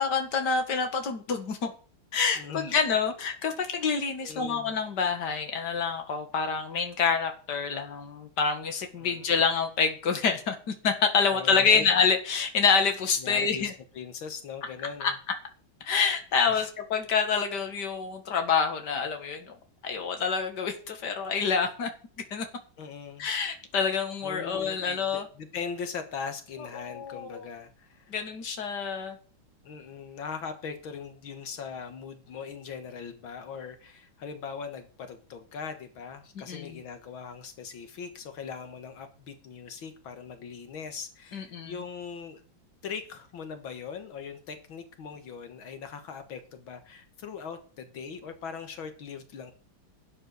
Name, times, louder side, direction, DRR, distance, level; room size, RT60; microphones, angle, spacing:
voice 1, 0.0-1.7 2.1-13.7 15.0-15.1 15.8-19.6 19.8-21.9 22.3-22.5 23.2-25.3 26.8-27.5 28.1-29.2 36.5-36.8 41.3-41.8, left 5 dB, 60° left, 5 dB, 2.4 m, -27 dB
voice 2, 2.4-2.8 4.2-4.7 9.0-9.3 11.3-11.8 13.2-15.1 16.5-16.7 22.8-23.3 24.2-28.1 29.6-42.4 42.8-49.5, left 6 dB, 80° left, 7 dB, 2.2 m, -40 dB
12.0 x 8.7 x 6.9 m, 0.40 s
omnidirectional pair, 2.1 m